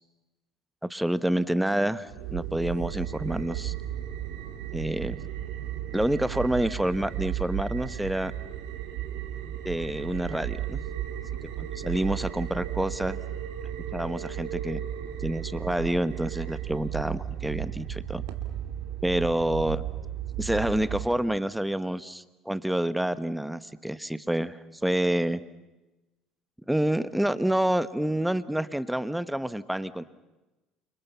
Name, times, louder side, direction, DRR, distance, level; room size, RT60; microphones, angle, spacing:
voice 1, 0.9-3.7 4.7-5.2 5.9-8.3 9.6-10.8 11.6-13.2 13.9-14.8 15.2-18.2 19.0-19.8 20.4-25.4 26.7-30.0, right 1 dB, 5° right, 14 dB, 1.3 m, -28 dB
sound 1, 2.1-21.0, right 11 dB, 70° right, 2.8 m, -34 dB
30.0 x 26.0 x 5.8 m, 1.0 s
hypercardioid pair, 65°, 0 cm